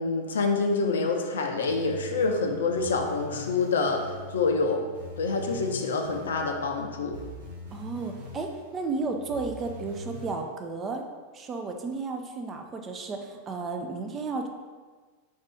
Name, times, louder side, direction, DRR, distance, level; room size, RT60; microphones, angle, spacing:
voice 1, 0.0-4.9 5.2-7.2, left 4 dB, 65° left, 3 dB, 0.5 m, -27 dB
sound 1, 1.7-10.4, equal, 70° right, 1.0 m, -42 dB
voice 2, 7.7-11.1 11.3-14.5, right 3 dB, 25° right, 3 dB, 0.5 m, -33 dB
4.9 x 2.6 x 3.4 m, 1.4 s
figure-of-eight pair, 90°, 0 cm